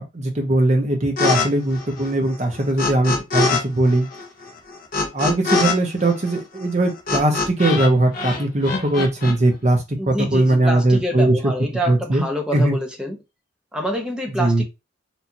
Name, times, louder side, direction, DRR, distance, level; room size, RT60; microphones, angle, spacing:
voice 1, 0.0-4.1 5.1-11.5 11.9-12.2 12.5-12.8 14.4-14.6, right 2 dB, 35° right, 0.9 m, -20 dB
sound 1, 1.2-1.5 1.7-3.6 3.9-9.3, left 4 dB, 45° left, 0.8 m, -23 dB
voice 2, 10.0-13.2 13.7-14.6, equal, 5° right, 0.8 m, -26 dB
4.5 x 2.5 x 2.8 m
head